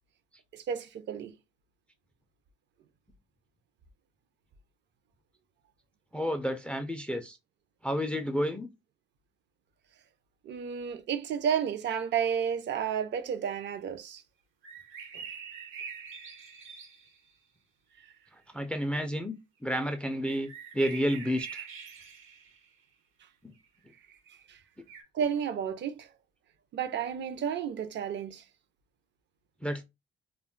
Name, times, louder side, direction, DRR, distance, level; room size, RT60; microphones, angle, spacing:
voice 1, 0.5-1.3 10.4-14.2 15.1-15.2 24.3-24.6 25.1-26.1 26.7-28.4, right 8 dB, 65° right, 0.5 m, -32 dB
voice 2, 6.1-7.4 7.8-8.7 18.5-21.7 23.4-23.5 29.6-29.8, equal, 5° left, 0.3 m, -31 dB
sound 1, 14.6-17.3 20.2-22.7 24.1-24.2 24.9-25.0, right 6 dB, 80° right, 0.8 m, -44 dB
2.2 x 2.0 x 3.7 m
cardioid pair, 90°, 20 cm